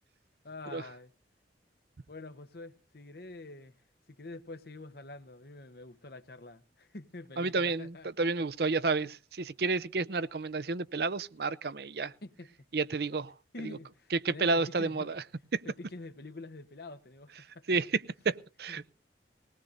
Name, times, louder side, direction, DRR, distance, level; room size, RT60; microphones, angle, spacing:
voice 1, 0.4-1.1 2.1-3.8 4.1-8.3 9.0-9.1 12.2-12.5 13.5-15.1 15.6-17.6 18.7-18.9, left 2 dB, 55° left, 1.0 m, -46 dB
voice 2, 7.4-12.1 12.7-13.3 13.6-13.8 14.1-15.2 15.5-15.6 17.7-18.8, right 3 dB, 60° right, 0.6 m, -31 dB
20.5 x 18.5 x 2.6 m
head